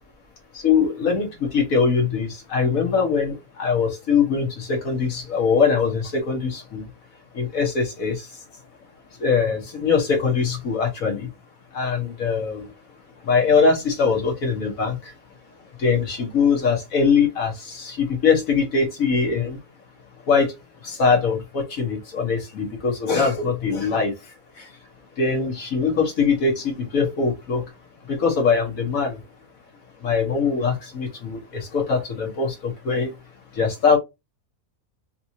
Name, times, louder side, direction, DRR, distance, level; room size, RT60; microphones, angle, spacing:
voice 1, 0.5-6.8 7.3-8.3 9.2-11.3 11.7-12.7 13.3-15.1 15.8-19.6 20.3-20.5 20.8-24.1 24.6-24.7 25.2-27.6 28.1-29.2 30.0-33.1 33.5-34.0, left 5 dB, 70° left, 1.6 m, -22 dB
3.4 x 3.0 x 2.8 m
omnidirectional pair, 1.5 m